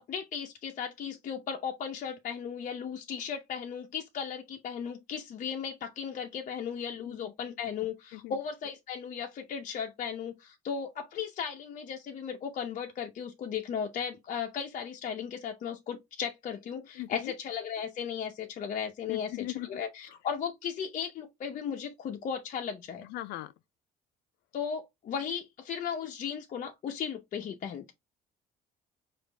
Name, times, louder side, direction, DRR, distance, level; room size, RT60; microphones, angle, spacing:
voice 1, 0.0-23.1 24.5-27.9, left 7 dB, 50° left, 0.7 m, -36 dB
voice 2, 17.0-17.3 19.1-19.7 23.0-23.5, left 16 dB, 85° left, 0.5 m, -39 dB
5.0 x 2.5 x 3.3 m
cardioid pair, 110°, 17 cm